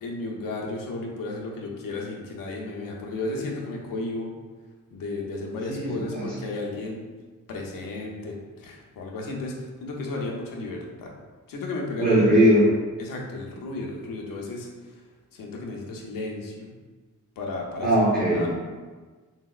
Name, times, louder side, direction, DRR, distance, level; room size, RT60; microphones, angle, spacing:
voice 1, 0.0-4.3 4.9-7.1 7.5-9.6 9.8-11.1 11.5-12.1 13.0-15.0 15.3-16.7 17.4-17.9 18.3-18.5, left 2 dB, 90° left, -1 dB, 0.6 m, -33 dB
voice 2, 5.7-6.3 12.0-12.7 17.8-18.5, equal, 25° right, -8 dB, 0.9 m, -20 dB
4.0 x 2.0 x 2.3 m, 1.4 s
cardioid pair, 95°, 32 cm